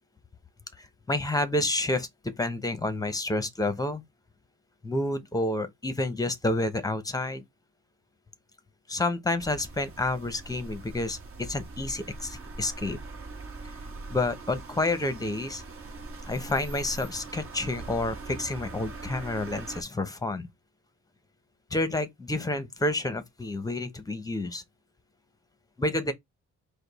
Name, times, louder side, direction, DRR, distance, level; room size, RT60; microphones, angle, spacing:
voice 1, 0.8-4.0 4.8-7.4 8.9-13.0 14.1-15.6 16.3-20.5 21.7-24.6 25.8-26.1, left 2 dB, 10° left, 0.8 m, -29 dB
sound 1, 9.4-19.8, right 3 dB, 45° right, 1.3 m, -42 dB
5.0 x 2.2 x 4.0 m
cardioid pair, 115°, 30 cm